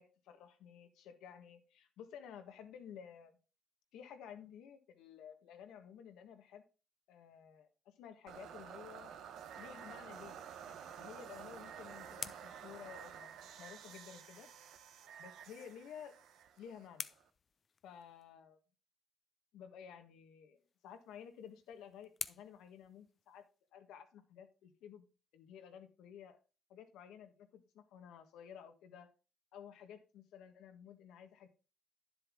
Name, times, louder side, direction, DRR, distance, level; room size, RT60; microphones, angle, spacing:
voice 1, 0.0-3.3 3.9-6.6 7.1-9.1 9.6-14.5 15.2-16.2 16.6-17.1 17.8-18.6 19.5-23.5 23.7-25.0 25.3-26.4 26.7-29.1 29.5-31.5, left 8 dB, 90° left, 1.4 m, -54 dB
sound 1, 8.3-17.3, right 8 dB, 80° right, 1.0 m, -51 dB
sound 2, 15.9-18.3 20.6-23.7, left 6 dB, 45° left, 0.6 m, -51 dB
10.0 x 7.8 x 3.7 m
cardioid pair, 90°, 0 cm